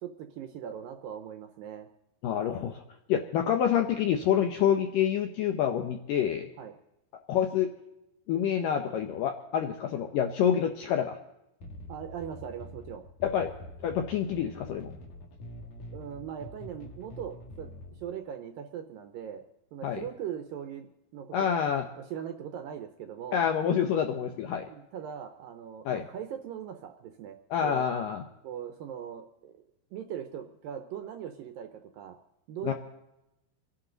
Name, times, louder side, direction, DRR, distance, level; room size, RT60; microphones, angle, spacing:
voice 1, 0.0-1.9 6.6-6.7 11.9-13.0 15.9-19.4 19.7-21.5 22.0-23.5 24.7-27.9 28.4-29.6 29.9-32.2 32.5-32.7, right 9 dB, 75° right, 7 dB, 2.1 m, -40 dB
voice 2, 2.2-2.8 3.1-6.5 7.3-7.7 8.3-11.2 13.2-13.5 13.8-14.9 19.8-20.0 21.3-21.8 23.3-24.7 25.9-26.0 27.5-28.2 32.6-32.7, left 9 dB, 75° left, 5 dB, 2.0 m, -27 dB
sound 1, 11.6-18.0, left 1 dB, 50° left, 2.7 m, -45 dB
27.0 x 11.0 x 3.9 m, 0.91 s
omnidirectional pair, 4.9 m